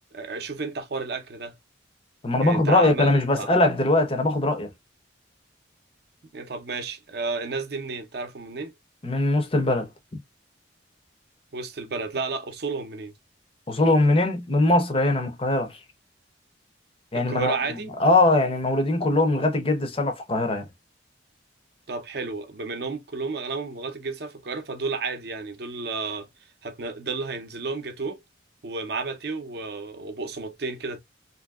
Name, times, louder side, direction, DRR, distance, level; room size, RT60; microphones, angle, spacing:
voice 1, 0.1-1.6 2.4-3.5 6.3-8.7 11.5-13.2 17.1-17.9 21.9-26.3 26.6-28.2 28.6-31.0, right 4 dB, 55° right, 0.6 m, -32 dB
voice 2, 2.2-4.7 9.0-9.9 13.7-15.8 17.1-20.7, left 2 dB, 30° left, 0.6 m, -21 dB
2.7 x 2.6 x 2.3 m
head